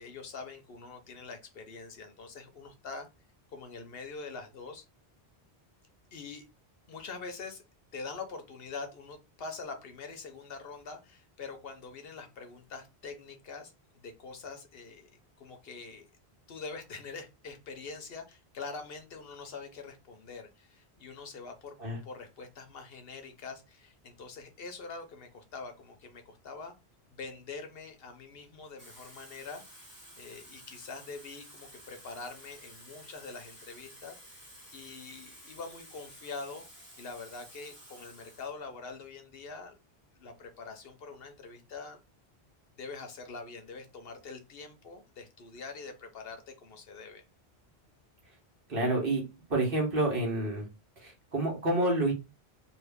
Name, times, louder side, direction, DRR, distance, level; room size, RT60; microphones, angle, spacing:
voice 1, 0.0-3.1 3.5-4.8 6.1-6.4 6.9-7.6 7.9-15.1 15.4-16.1 16.5-21.8 22.0-26.7 27.1-34.4 34.7-36.6 37.0-39.8 40.2-42.0 42.8-47.2, left 4 dB, 65° left, 6 dB, 0.9 m, -44 dB
Water tap faucet / Fill (with liquid), 28.6-38.6 38.9-39.2, equal, 10° right, 1.5 m, -53 dB
voice 2, 48.7-49.2 49.5-50.7 51.0-52.1, right 2 dB, 55° right, -1 dB, 1.3 m, -28 dB
2.7 x 2.6 x 3.4 m, 0.27 s
omnidirectional pair, 1.1 m